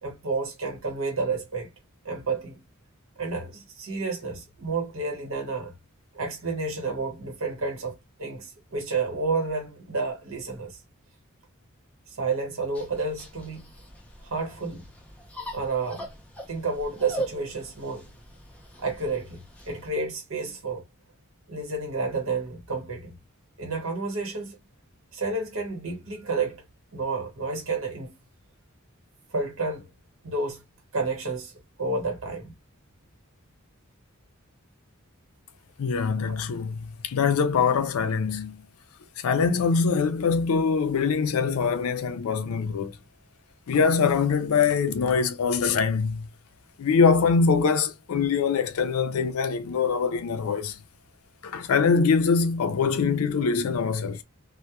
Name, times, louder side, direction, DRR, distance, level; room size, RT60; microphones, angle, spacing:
voice 1, 0.0-1.7 2.0-2.6 3.2-5.7 6.1-10.8 12.2-13.7 14.2-14.9 15.5-16.1 16.5-18.1 18.8-20.8 21.5-23.1 23.6-24.6 25.1-26.6 26.9-28.2 29.3-29.9 30.2-30.6 30.9-31.5 31.8-32.5 36.2-36.4, right 3 dB, 70° right, 0.9 m, -30 dB
sound 1, 12.7-19.9, right 1 dB, 5° left, 0.5 m, -40 dB
voice 2, 35.8-38.6 39.2-42.9 43.7-46.3 46.8-50.8 51.4-54.2, left 5 dB, 85° left, 0.4 m, -23 dB
2.3 x 2.1 x 2.8 m
head